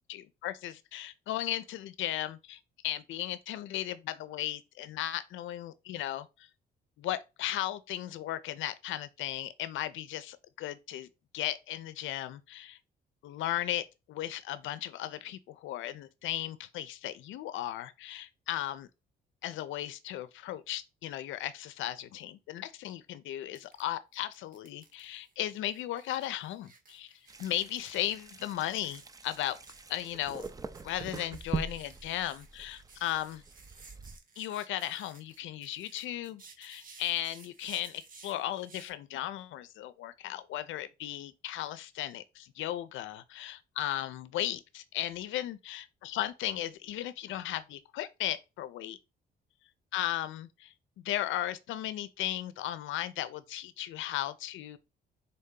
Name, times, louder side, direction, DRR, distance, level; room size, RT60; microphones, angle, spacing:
voice 1, 0.1-6.5 7.0-12.8 13.2-18.9 19.4-27.1 27.4-29.6 29.9-30.5 30.8-33.4 34.4-49.0 49.9-50.7 51.0-54.8, left 13 dB, 80° left, 0.5 m, -36 dB
sound 1, 23.5-23.8 24.1-38.9, right 4 dB, 45° right, 1.1 m, -56 dB
sound 2, 27.3-34.2, right 4 dB, 20° right, 0.4 m, -42 dB
3.9 x 2.7 x 3.7 m
cardioid pair, 90°, 20 cm